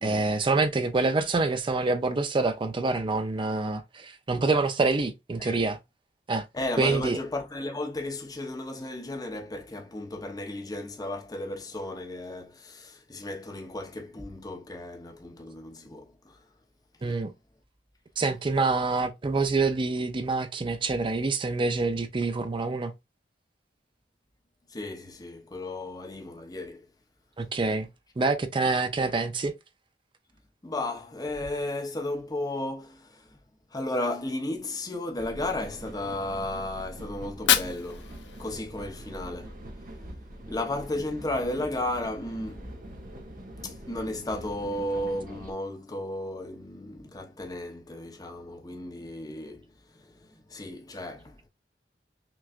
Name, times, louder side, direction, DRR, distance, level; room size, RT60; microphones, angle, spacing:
voice 1, 0.0-5.8 6.3-6.4 6.8-7.2 17.0-17.3 18.2-22.9 27.4-27.9 28.2-29.5, right 3 dB, 30° right, 0.4 m, -26 dB
voice 2, 6.5-16.4 24.7-26.8 30.6-33.3 33.7-39.5 40.5-42.9 43.5-51.4, left 1 dB, 20° left, 0.8 m, -34 dB
sound 1, 35.2-45.5, right 1 dB, 50° right, 1.0 m, -43 dB
Fire, 37.2-39.2, left 10 dB, 80° left, 0.5 m, -29 dB
5.9 x 2.3 x 2.4 m
head